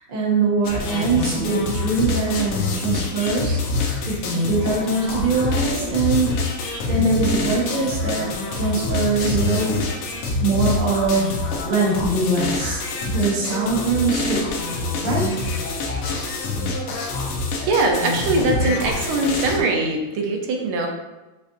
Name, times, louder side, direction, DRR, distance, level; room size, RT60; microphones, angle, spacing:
voice 1, 0.1-3.6 4.1-4.2 4.4-9.8 10.4-12.8 13.1-14.6 15.0-15.3, right 3 dB, 35° right, -5 dB, 0.8 m, -22 dB
sound 1, 0.6-19.6, left 3 dB, 85° left, 1.6 m, -26 dB
voice 2, 17.6-20.9, right 3 dB, 80° right, 1 dB, 1.5 m, -22 dB
6.5 x 2.5 x 2.5 m, 1.1 s
omnidirectional pair, 2.3 m